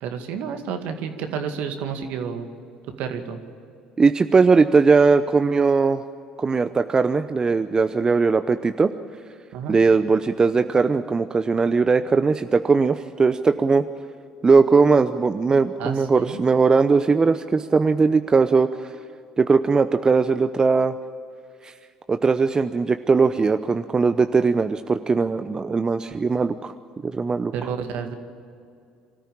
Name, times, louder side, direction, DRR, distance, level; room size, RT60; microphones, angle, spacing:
voice 1, 0.0-2.5 3.0-3.4 9.5-9.8 15.8-16.4 27.5-28.1, right 7 dB, 65° right, 6 dB, 2.1 m, -30 dB
voice 2, 4.0-6.0 6.4-8.9 9.7-13.8 14.4-18.9 19.4-20.9 21.6-21.7 22.1-26.7 27.0-27.5, right 4 dB, 25° right, 10 dB, 0.8 m, -19 dB
25.0 x 14.0 x 8.7 m, 2.5 s
hypercardioid pair, 60°, 3 cm